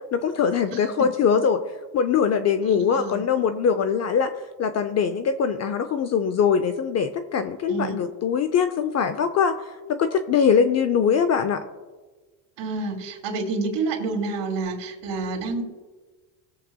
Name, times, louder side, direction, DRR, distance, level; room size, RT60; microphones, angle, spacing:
voice 1, 0.1-1.6 1.9-4.3 4.6-9.6 9.9-11.6, left 6 dB, 35° left, 10 dB, 0.5 m, -22 dB
voice 2, 0.7-1.1 2.6-3.2 7.7-8.0 12.6-15.6, right 3 dB, 55° right, 1 dB, 2.4 m, -29 dB
20.0 x 7.5 x 2.2 m, 1.3 s
supercardioid pair, 120°, 50 cm